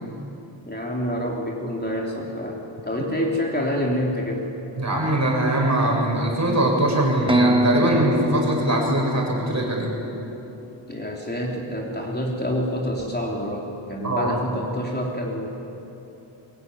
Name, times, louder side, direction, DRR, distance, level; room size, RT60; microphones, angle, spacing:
voice 1, 0.6-4.5 10.9-15.5, equal, 20° left, -1 dB, 3.5 m, -27 dB
voice 2, 4.8-9.9 14.0-14.4, right 1 dB, 35° right, -1 dB, 6.9 m, -22 dB
sound 1, 7.3-11.1, right 1 dB, 10° right, 1.2 m, -25 dB
23.0 x 22.5 x 9.9 m, 3.0 s
wide cardioid pair, 100°, 48 cm